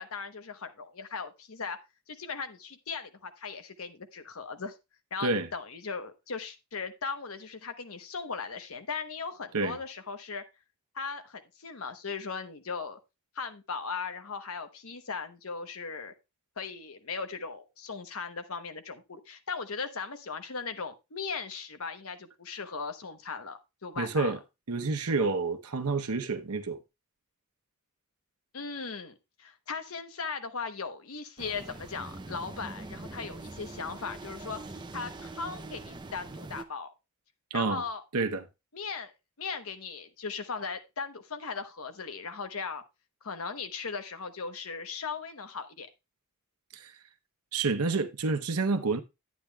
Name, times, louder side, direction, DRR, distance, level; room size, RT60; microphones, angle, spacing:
voice 1, 0.0-1.8 2.1-4.8 5.1-10.4 10.9-13.0 13.3-16.1 16.6-24.3 28.5-36.9 37.5-38.0 38.7-39.1 39.4-42.8 43.2-45.9, left 5 dB, 70° left, 1.0 m, -38 dB
voice 2, 24.0-24.4 24.7-26.8 37.5-37.8 38.1-38.4 46.7-46.9 47.5-49.0, right 3 dB, 85° right, 0.9 m, -29 dB
sound 1, 31.4-36.6, right 2 dB, 20° right, 0.5 m, -43 dB
10.5 x 9.5 x 2.3 m
head